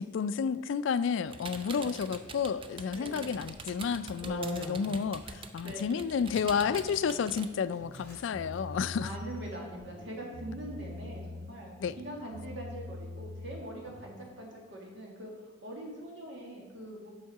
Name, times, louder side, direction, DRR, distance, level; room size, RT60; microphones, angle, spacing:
voice 1, 0.0-9.1 11.8-11.9, left 6 dB, 70° left, 15 dB, 0.3 m, -31 dB
sound 1, 1.3-7.5, right 4 dB, 25° right, 0.4 m, -45 dB
voice 2, 2.9-3.3 5.6-6.0 9.0-15.3 15.6-17.1, right 1 dB, 65° right, -2 dB, 1.9 m, -43 dB
sound 2, 4.2-5.4 6.3-6.8 7.3-7.4 7.7-8.2 8.5-8.6 9.1-9.8, right 1 dB, 10° left, 2.6 m, -42 dB
sound 3, 6.3-7.4 7.7-9.5 9.8-11.6 11.8-14.2, left 2 dB, 80° right, 1.0 m, -44 dB
7.3 x 6.2 x 4.8 m, 1.3 s
head